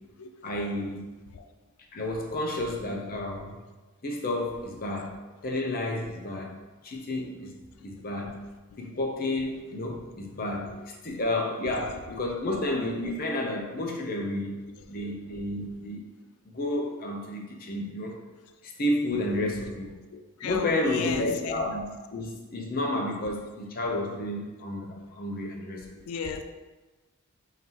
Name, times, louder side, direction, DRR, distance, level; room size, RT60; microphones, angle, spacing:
voice 1, 0.4-1.0 1.9-3.5 4.0-5.1 5.4-6.5 6.8-7.5 7.8-8.4 8.8-10.7 11.0-14.5 14.9-16.0 16.5-18.1 18.8-19.9 20.4-26.0, left 1 dB, 45° left, 1 dB, 0.6 m, -31 dB
voice 2, 20.1-21.2 26.1-26.4, left 6 dB, 85° left, 6 dB, 0.3 m, -34 dB
5.1 x 2.8 x 2.9 m, 1.2 s
head